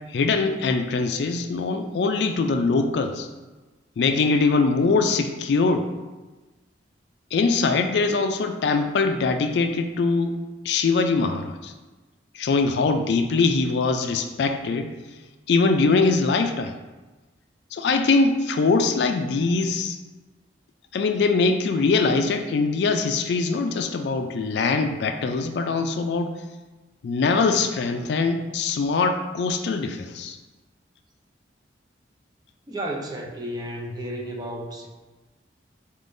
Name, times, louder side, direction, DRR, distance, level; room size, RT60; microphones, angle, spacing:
voice 1, 0.1-3.3 4.0-5.9 7.3-10.4 10.6-11.7 12.3-14.9 15.5-16.7 17.7-20.0 20.9-26.4 27.0-30.4, left 4 dB, 65° left, 7 dB, 0.3 m, -22 dB
voice 2, 32.7-34.9, right 1 dB, 20° right, 0 dB, 0.5 m, -32 dB
4.3 x 3.6 x 2.6 m, 1.2 s
head